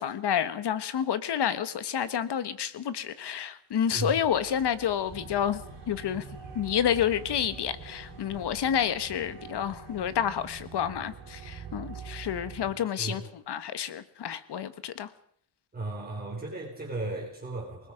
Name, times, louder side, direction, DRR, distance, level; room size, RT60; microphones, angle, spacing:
voice 1, 0.0-6.2 6.5-15.1, left 9 dB, 75° left, 1.5 m, -29 dB
sound 1, 3.9-10.7, left 5 dB, 90° left, 3.7 m, -51 dB
voice 2, 3.9-4.2 13.0-13.3 15.7-17.9, right 2 dB, 20° right, 4.4 m, -35 dB
sound 2, 5.1-12.7, right 7 dB, 70° right, 3.8 m, -45 dB
27.0 x 20.0 x 5.2 m
wide cardioid pair, 170°, 41 cm